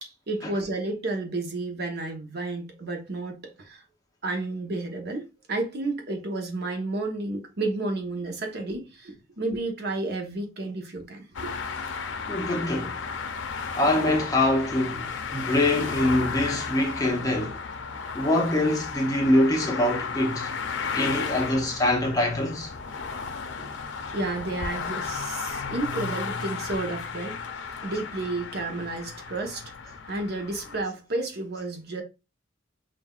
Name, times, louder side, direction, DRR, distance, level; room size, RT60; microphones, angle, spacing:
voice 1, 0.0-3.8 4.2-11.5 23.6-23.8 24.1-27.5 27.8-32.0, right 2 dB, 60° right, 0.9 m, -31 dB
sound 1, 11.3-30.8, left 5 dB, 80° left, 0.6 m, -34 dB
voice 2, 12.3-13.0 13.7-17.6 18.1-20.5 20.9-22.7, left 1 dB, 20° left, 0.9 m, -24 dB
5.6 x 2.6 x 2.3 m
head